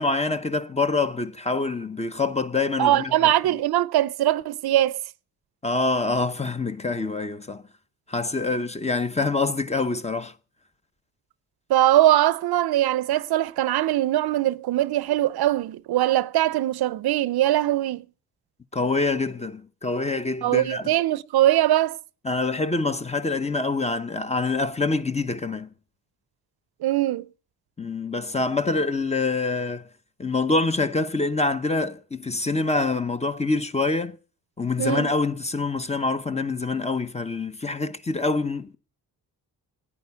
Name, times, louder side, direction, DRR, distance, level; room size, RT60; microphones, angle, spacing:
voice 1, 0.0-3.1 5.6-7.6 8.1-10.3 18.7-20.9 22.2-25.7 27.8-29.9 30.2-34.2 34.6-38.8, left 3 dB, 15° left, 0.8 m, -25 dB
voice 2, 2.8-5.0 11.7-18.0 20.4-22.0 26.8-27.2 34.8-35.1, right 13 dB, 75° right, 0.6 m, -21 dB
16.5 x 9.9 x 6.9 m
cardioid pair, 120°, 38 cm